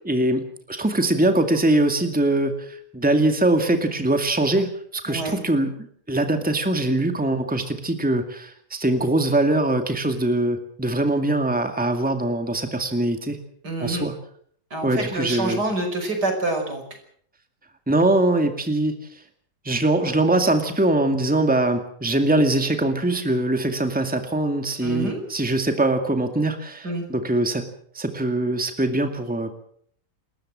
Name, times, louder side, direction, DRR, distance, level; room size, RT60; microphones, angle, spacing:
voice 1, 0.1-5.7 6.1-13.4 13.8-14.1 14.8-15.6 17.9-19.0 19.6-27.7 27.9-29.5, right 2 dB, 5° right, 6 dB, 2.1 m, -22 dB
voice 2, 5.1-5.4 13.6-14.1 14.7-16.8 24.8-25.2 26.8-27.0, right 2 dB, 85° right, 5 dB, 6.2 m, -27 dB
28.0 x 14.5 x 7.6 m, 0.63 s
omnidirectional pair, 1.7 m